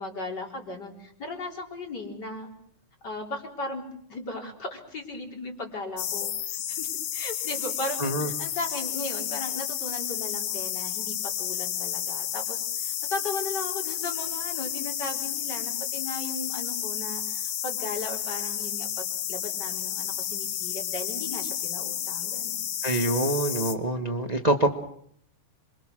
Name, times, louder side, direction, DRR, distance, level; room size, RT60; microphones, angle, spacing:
voice 1, 0.0-2.5 3.0-3.8 4.1-22.7, left 2 dB, 35° left, 2 dB, 4.6 m, -37 dB
sound 1, 6.0-23.8, left 10 dB, 75° left, 2.6 m, -31 dB
voice 2, 8.0-8.3 22.8-24.7, right 2 dB, 70° right, 5 dB, 0.3 m, -25 dB
27.0 x 25.0 x 6.3 m, 0.67 s
omnidirectional pair, 3.5 m